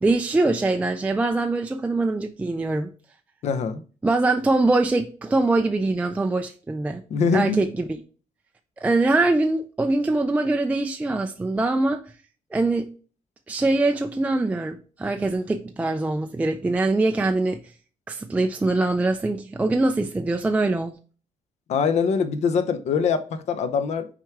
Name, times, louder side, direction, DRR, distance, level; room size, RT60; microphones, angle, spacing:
voice 1, 0.0-2.9 4.0-7.0 7.3-7.8 8.8-12.0 12.5-12.9 13.5-17.6 18.1-20.9, right 2 dB, 10° right, 0.3 m, -23 dB
voice 2, 3.4-3.8 7.1-7.7 21.7-24.1, left 5 dB, 60° left, 0.7 m, -23 dB
6.1 x 4.7 x 3.5 m
cardioid pair, 175°, 13 cm